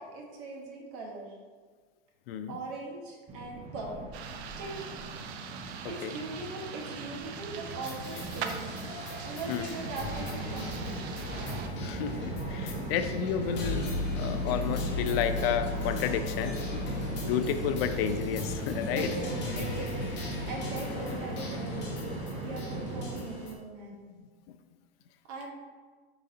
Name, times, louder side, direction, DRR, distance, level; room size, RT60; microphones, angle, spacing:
voice 1, 0.0-1.3 2.5-4.1 4.6-4.8 5.8-8.7 9.2-11.4 18.9-21.9 22.4-24.0 25.3-25.5, right 2 dB, 45° right, -1 dB, 1.1 m, -40 dB
voice 2, 2.3-2.6 6.0-6.1 9.5-9.6 11.8-16.6 17.2-19.1, left 8 dB, 65° left, 9 dB, 0.5 m, -31 dB
Train, 3.3-23.2, right 2 dB, 20° right, 0.5 m, -38 dB
sound 1, 4.1-11.7, right 7 dB, 75° right, 0.6 m, -42 dB
sound 2, 7.8-23.6, left 2 dB, 35° left, 1.0 m, -37 dB
5.0 x 3.8 x 2.8 m, 1.5 s
supercardioid pair, 125°, 32 cm